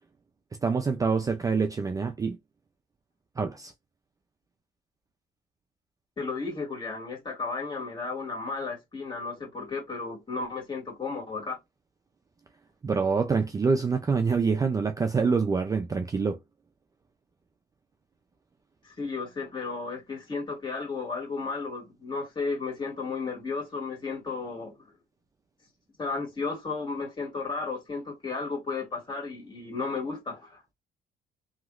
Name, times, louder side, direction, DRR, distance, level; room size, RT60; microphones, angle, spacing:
voice 1, 0.6-2.4 3.4-3.7 12.8-16.4, right 5 dB, 20° right, 0.4 m, -26 dB
voice 2, 6.2-11.6 18.8-24.8 26.0-30.6, left 4 dB, 25° left, 2.0 m, -34 dB
3.0 x 2.8 x 2.4 m
cardioid pair, 110°, 17 cm